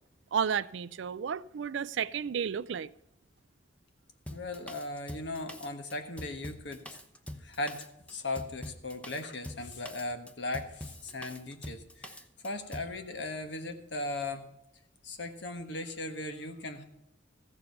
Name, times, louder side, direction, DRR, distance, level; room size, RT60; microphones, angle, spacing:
voice 1, 0.3-2.9, right 7 dB, 70° right, 0.4 m, -32 dB
voice 2, 4.3-7.0 7.4-12.2 12.4-14.4 15.0-16.8, left 2 dB, 65° left, 1.4 m, -38 dB
Drum kit, 4.3-13.0, left 1 dB, 5° left, 0.8 m, -44 dB
15.0 x 7.1 x 6.8 m
head